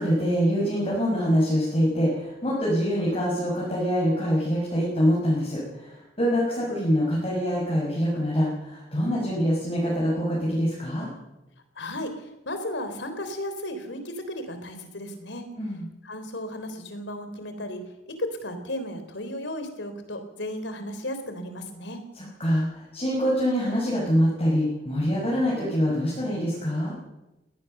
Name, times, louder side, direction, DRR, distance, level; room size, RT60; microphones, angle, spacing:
voice 1, 0.0-11.1 15.6-15.8 22.1-26.9, equal, 35° left, -5 dB, 6.4 m, -25 dB
voice 2, 11.8-12.1 12.5-15.4 16.0-17.8 18.1-22.0, left 1 dB, 80° left, 8 dB, 3.9 m, -34 dB
22.0 x 18.0 x 6.8 m, 0.97 s
head